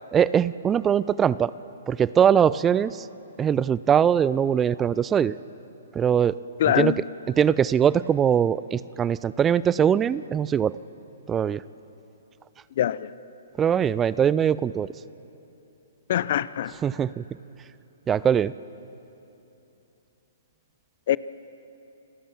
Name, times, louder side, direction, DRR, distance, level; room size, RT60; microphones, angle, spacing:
voice 1, 0.1-1.5 1.9-3.1 3.4-5.4 5.9-6.4 6.8-7.0 7.3-10.7 11.3-11.6 13.6-14.9 16.8-17.2 18.1-18.5, right 8 dB, 15° right, 18 dB, 0.4 m, -21 dB
voice 2, 6.6-7.0 12.8-13.1 16.1-16.7 21.1-21.2, left 11 dB, 55° left, 18 dB, 0.6 m, -23 dB
27.5 x 17.0 x 7.5 m, 3.0 s
hypercardioid pair, 130°, 0 cm